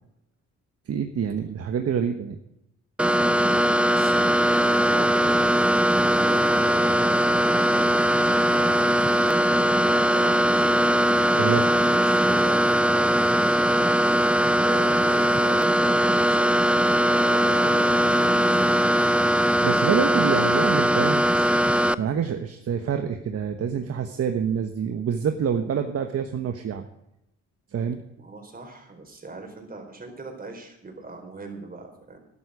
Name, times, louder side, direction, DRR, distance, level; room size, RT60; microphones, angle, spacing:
voice 1, 0.9-2.4 11.4-11.6 19.6-21.2 22.0-26.8 27.7-28.0, right 7 dB, 50° right, 6 dB, 1.2 m, -26 dB
sound 1, 3.0-21.9, equal, 5° right, 0.4 m, -20 dB
voice 2, 3.9-5.9 6.2-8.8 9.5-16.6 17.3-19.4 28.2-32.2, right 3 dB, 30° right, 3 dB, 4.3 m, -40 dB
13.0 x 11.5 x 5.0 m, 0.83 s
cardioid pair, 90°, 30 cm